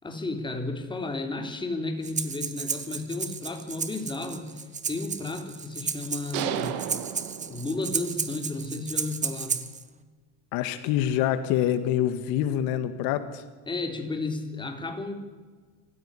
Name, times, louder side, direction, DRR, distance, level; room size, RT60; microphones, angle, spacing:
voice 1, 0.0-4.5 4.9-6.8 7.4-9.6 13.7-15.1, left 2 dB, 15° left, 4 dB, 3.5 m, -33 dB
Breathing, 2.0-9.8, right 6 dB, 20° right, 1.5 m, -33 dB
sound 1, 6.3-8.2, right 11 dB, 75° right, 2.5 m, -33 dB
voice 2, 10.5-13.4, left 11 dB, 70° left, 11 dB, 1.9 m, -26 dB
26.0 x 16.0 x 10.0 m, 1.4 s
cardioid pair, 140°, 36 cm